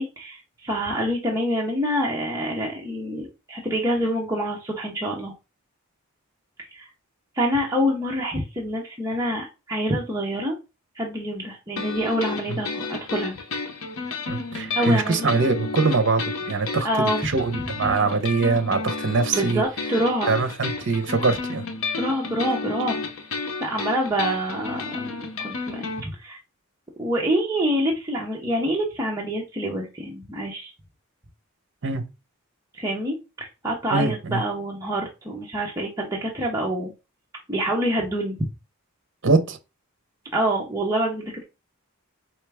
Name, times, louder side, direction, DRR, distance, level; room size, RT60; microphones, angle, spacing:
voice 1, 0.0-5.3 6.7-6.9 7.3-10.6 11.0-13.4 14.7-15.4 16.8-17.3 19.3-20.3 21.9-23.0 23.6-25.1 25.4-26.4 27.0-30.7 32.7-36.9 37.5-38.4 40.3-41.4, equal, 15° right, 0.8 m, -26 dB
sound 1, 11.8-26.0, left 4 dB, 70° left, 0.8 m, -32 dB
voice 2, 14.3-19.6 20.3-21.6 31.8-32.1 33.9-34.4 39.2-39.6, right 3 dB, 60° right, 0.7 m, -23 dB
4.5 x 3.3 x 3.4 m
head